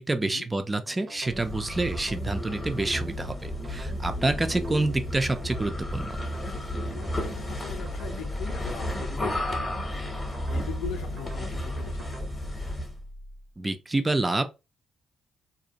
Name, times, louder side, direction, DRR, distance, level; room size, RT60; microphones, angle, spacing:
voice 1, 0.0-6.2 13.6-14.4, right 2 dB, 20° right, 0.4 m, -28 dB
sound 1, 0.9-12.3, right 3 dB, 55° right, 0.6 m, -46 dB
sound 2, 1.3-13.0, left 1 dB, 20° left, 0.7 m, -33 dB
voice 2, 6.9-10.1 10.5-12.5, left 6 dB, 90° left, 0.5 m, -40 dB
sound 3, 12.0-13.6, equal, 90° right, 1.3 m, -46 dB
2.5 x 2.1 x 2.8 m
cardioid pair, 90°, 0 cm